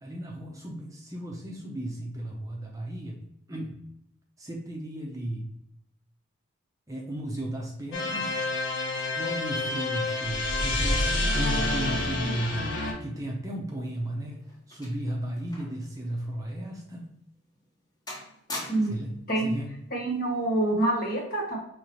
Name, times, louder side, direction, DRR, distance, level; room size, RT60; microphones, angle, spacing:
voice 1, 0.0-3.2 3.5-3.8 4.4-5.5 6.9-8.4 8.8-12.7 13.0-17.1 18.9-19.1 19.4-19.7, right 1 dB, 15° right, -1 dB, 0.6 m, -35 dB
sound 1, 7.9-12.9, left 2 dB, 65° left, 1.0 m, -28 dB
sound 2, 13.8-15.9 16.2-16.3 17.0-17.1 17.5-17.8 18.1-19.1 20.1-20.4, left 1 dB, 20° left, 1.0 m, -42 dB
voice 2, 18.7-19.0 19.3-19.5 19.9-21.6, right 2 dB, 45° left, -1 dB, 1.3 m, -26 dB
5.3 x 3.2 x 3.0 m, 0.76 s
head